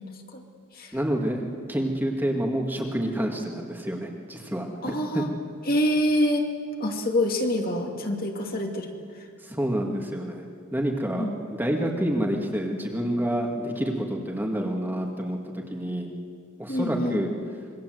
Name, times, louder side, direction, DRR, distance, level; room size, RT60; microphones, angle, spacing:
voice 1, 0.9-1.4 1.7-5.2 9.4-10.5 10.7-16.1 16.6-17.3, right 1 dB, 10° right, 0 dB, 2.0 m, -28 dB
voice 2, 4.8-5.3 5.7-6.5 6.8-8.9 11.2-11.4 16.7-17.2, left 1 dB, 40° left, 2 dB, 2.4 m, -26 dB
26.0 x 22.5 x 7.9 m, 2.2 s
head